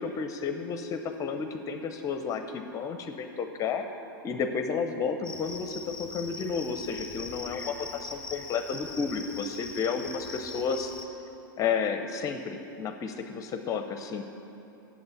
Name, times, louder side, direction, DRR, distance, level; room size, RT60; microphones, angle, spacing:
voice 1, 0.0-3.9 4.2-10.9 11.6-14.2, left 5 dB, 30° left, 7 dB, 0.6 m, -32 dB
Cricket, 5.2-11.1, left 3 dB, 10° left, 1.3 m, -41 dB
8.7 x 7.4 x 8.3 m, 2.9 s
hypercardioid pair, 105°, 12 cm